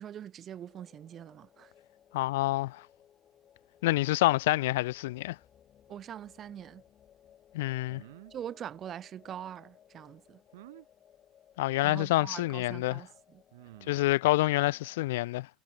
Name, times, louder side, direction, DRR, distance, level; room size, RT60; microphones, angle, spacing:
voice 1, 0.0-1.7 5.9-6.8 8.3-10.4 11.8-13.4, right 10 dB, 45° right, 2.5 m, -43 dB
sound 1, 0.7-15.1, left 10 dB, 45° left, 6.4 m, -61 dB
voice 2, 2.1-2.8 3.8-5.4 7.5-8.0 11.6-13.0 13.9-15.5, left 18 dB, 90° left, 0.5 m, -27 dB
sound 2, 7.9-8.3 10.5-10.9 12.3-12.4 13.5-14.1, right 18 dB, 90° right, 4.5 m, -51 dB
supercardioid pair, 90°, 0 cm